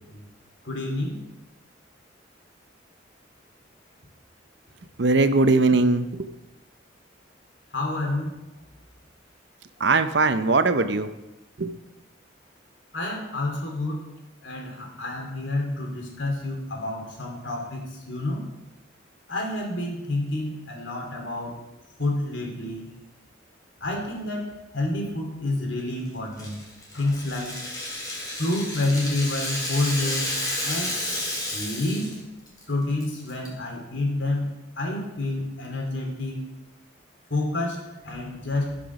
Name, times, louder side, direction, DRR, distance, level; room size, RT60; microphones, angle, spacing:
voice 1, 0.6-1.2 7.7-8.4 12.9-14.1 14.4-18.5 19.3-21.6 22.0-22.9 23.8-24.5 24.7-26.6 26.9-27.6 28.4-30.4 30.6-31.0 31.5-32.2 32.7-36.4 37.3-38.8, left 2 dB, 75° left, 1 dB, 3.0 m, -28 dB
voice 2, 5.0-6.3 9.8-11.1 11.6-11.8, right 3 dB, 65° right, 10 dB, 0.7 m, -20 dB
Rattle (instrument), 26.4-32.2 32.5-32.6 33.0-33.5, left 1 dB, 20° left, 3.1 m, -31 dB
15.0 x 6.0 x 6.0 m, 1.0 s
head